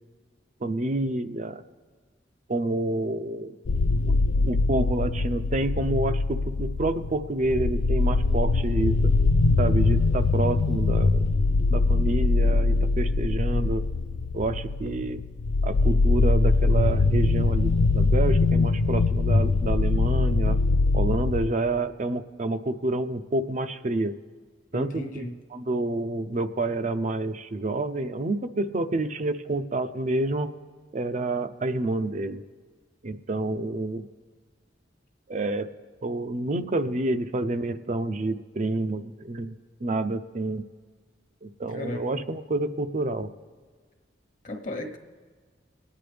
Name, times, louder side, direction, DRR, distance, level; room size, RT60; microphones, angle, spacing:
voice 1, 0.6-1.6 2.5-3.5 4.1-4.2 4.5-9.0 9.6-11.2 11.7-13.8 14.3-15.2 15.6-20.6 20.9-24.2 24.7-25.2 25.5-30.5 30.9-32.4 33.0-34.1 35.3-35.7 36.0-39.6 39.8-40.6 41.4-43.3, right 2 dB, 45° right, 11 dB, 0.5 m, -28 dB
sound 1, 3.7-21.5, left 3 dB, 70° left, 0.4 m, -22 dB
voice 2, 24.7-25.4 41.7-42.2 44.4-45.0, left 1 dB, 45° left, 4 dB, 1.1 m, -35 dB
23.5 x 9.4 x 3.4 m, 1.5 s
head